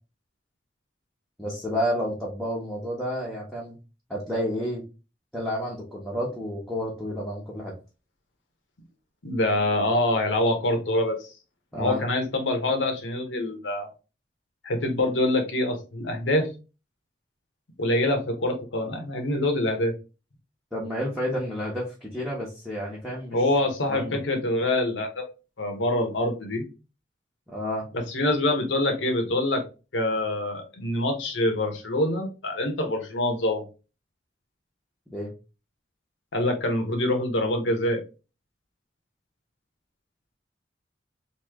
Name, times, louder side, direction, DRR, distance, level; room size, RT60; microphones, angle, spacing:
voice 1, 1.4-3.8 4.1-4.8 5.3-7.7 11.7-12.0 20.7-23.4 23.9-24.2 27.5-27.9 35.1-35.3, equal, 5° left, 0.8 m, -30 dB
voice 2, 9.2-11.2 11.7-13.9 14.6-16.5 17.8-19.9 23.3-25.3 25.6-26.7 27.9-29.6 29.9-33.7 36.3-38.0, left 1 dB, 85° left, 0.9 m, -25 dB
3.0 x 2.7 x 3.5 m
head